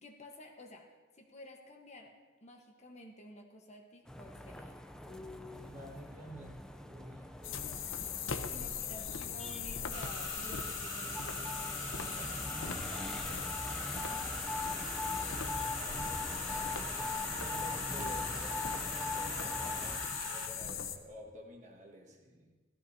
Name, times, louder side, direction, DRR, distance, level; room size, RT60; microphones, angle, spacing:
voice 1, 0.0-2.1 2.4-5.7 8.5-12.3 14.1-14.2, left 1 dB, 35° left, 2 dB, 1.1 m, -52 dB
sound 1, 4.1-20.0, left 2 dB, 5° left, 0.4 m, -43 dB
voice 2, 5.5-8.2 8.5-9.2 12.2-12.6 12.9-13.4 14.0-14.5 15.1-22.5, right 1 dB, 40° right, 1 dB, 1.6 m, -52 dB
sound 2, 7.4-21.0, left 8 dB, 80° left, 0.8 m, -39 dB
sound 3, 9.9-20.5, right 3 dB, 65° right, 1.7 m, -44 dB
15.5 x 13.5 x 2.7 m, 1.4 s
head